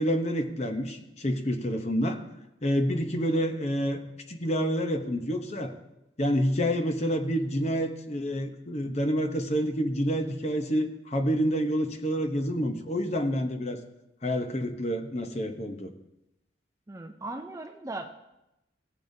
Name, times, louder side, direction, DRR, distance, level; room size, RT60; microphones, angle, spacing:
voice 1, 0.0-2.2 2.6-4.0 4.3-5.7 6.2-13.8 14.2-15.9, equal, 35° left, 6 dB, 0.8 m, -28 dB
voice 2, 16.9-18.1, right 2 dB, 15° right, 5 dB, 0.5 m, -38 dB
16.5 x 8.4 x 2.7 m, 0.91 s
head